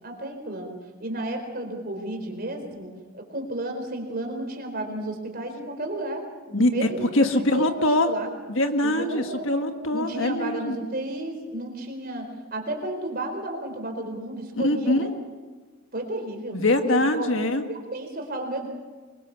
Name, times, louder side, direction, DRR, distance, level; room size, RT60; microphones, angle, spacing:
voice 1, 0.0-7.7 8.0-8.3 8.8-9.5 9.9-15.1 15.9-16.6 16.8-17.3 17.7-18.7, right 1 dB, 45° right, 3 dB, 4.2 m, -32 dB
voice 2, 7.1-8.1 8.5-10.7 14.5-15.1 16.5-17.6, left 1 dB, 60° left, 6 dB, 1.7 m, -23 dB
24.0 x 22.5 x 7.0 m, 1.3 s
head